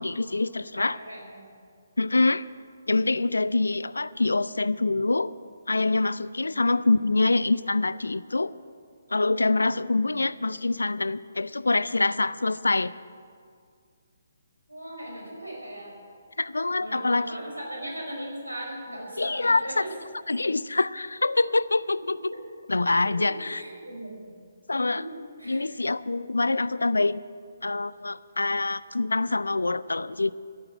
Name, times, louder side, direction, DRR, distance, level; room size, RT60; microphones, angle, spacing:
voice 1, 0.0-1.0 2.0-2.5 2.9-5.3 5.7-8.5 9.1-12.9 16.4-17.3 19.2-19.8 20.3-22.3 22.7-23.6 24.7-25.0 25.5-27.2 27.6-30.3, left 3 dB, 75° left, 18 dB, 0.4 m, -25 dB
voice 2, 0.7-1.5 6.5-6.8 14.7-15.9 16.8-19.9 22.0-22.4 23.0-24.3 24.9-25.6, right 1 dB, 90° right, -1 dB, 4.8 m, -38 dB
14.5 x 8.8 x 8.3 m, 2.2 s
figure-of-eight pair, 140°, 0 cm